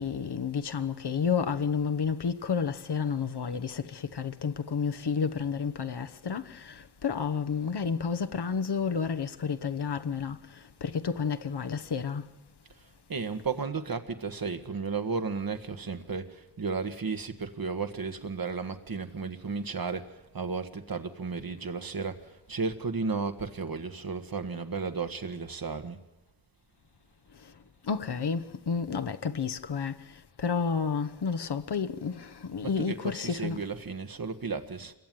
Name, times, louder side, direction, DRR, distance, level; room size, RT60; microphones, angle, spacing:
voice 1, 0.0-6.4 7.0-10.4 10.8-12.2 27.9-29.9 30.4-33.6, left 6 dB, 80° left, 1.2 m, -30 dB
voice 2, 12.8-26.0 32.6-34.9, right 4 dB, 60° right, 1.7 m, -34 dB
27.5 x 22.0 x 9.4 m
wide cardioid pair, 80°, 39 cm